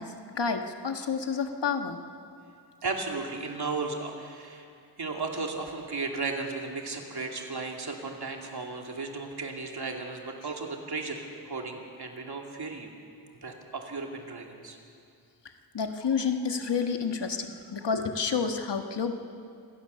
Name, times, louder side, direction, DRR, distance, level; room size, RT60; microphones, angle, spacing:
voice 1, 0.0-2.0 15.7-19.1, left 5 dB, 80° left, 5 dB, 1.6 m, -29 dB
voice 2, 2.8-4.7 5.0-12.9 13.4-14.8, right 3 dB, 65° right, 1 dB, 2.7 m, -35 dB
26.0 x 17.5 x 6.9 m, 2.5 s
wide cardioid pair, 95°, 41 cm